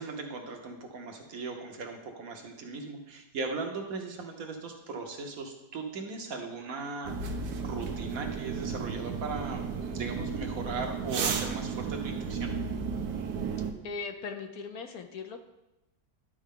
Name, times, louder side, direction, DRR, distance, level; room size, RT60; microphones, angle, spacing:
voice 1, 0.0-12.6, right 3 dB, 60° right, 3 dB, 1.3 m, -38 dB
sound 1, 7.0-13.7, right 5 dB, 80° right, 1.4 m, -33 dB
voice 2, 13.8-15.4, left 5 dB, 70° left, 6 dB, 1.0 m, -39 dB
11.5 x 4.6 x 3.7 m, 0.95 s
omnidirectional pair, 1.8 m